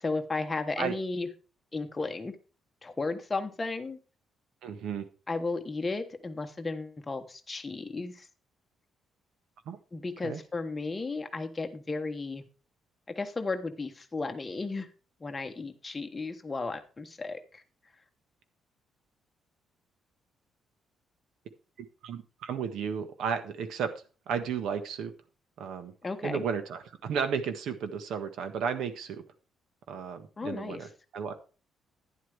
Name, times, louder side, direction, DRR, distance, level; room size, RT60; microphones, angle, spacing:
voice 1, 0.0-1.3 1.7-2.3 2.8-4.0 5.3-8.3 9.9-12.4 13.1-14.9 15.2-17.6 26.0-26.4 30.4-30.9, left 3 dB, 15° left, 6 dB, 1.1 m, -34 dB
voice 2, 4.6-5.1 9.6-9.8 10.2-10.4 22.0-23.9 24.3-25.1 25.6-25.9 26.2-29.2 29.9-31.3, right 6 dB, 70° right, 9 dB, 1.5 m, -33 dB
11.5 x 10.0 x 3.4 m, 0.34 s
cardioid pair, 170°, 0 cm